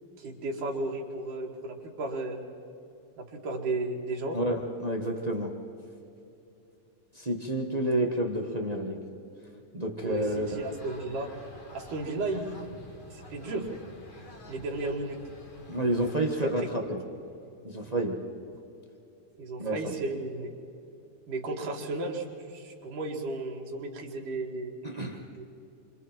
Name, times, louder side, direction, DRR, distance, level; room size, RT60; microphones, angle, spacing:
voice 1, 0.2-2.4 3.2-4.4 10.0-11.3 11.7-12.7 13.1-13.7 14.5-15.2 16.4-16.7 19.4-20.5 21.3-24.7 25.4-25.5, right 2 dB, 80° right, 0 dB, 3.9 m, -34 dB
voice 2, 4.3-5.5 7.1-9.0 9.7-10.6 15.7-17.0 17.6-18.2 19.6-19.9 24.8-25.2, right 1 dB, 30° right, 2 dB, 0.7 m, -29 dB
sound 1, 10.0-16.2, left 1 dB, 30° left, 0.9 m, -49 dB
28.5 x 25.5 x 4.6 m, 2.7 s
omnidirectional pair, 3.6 m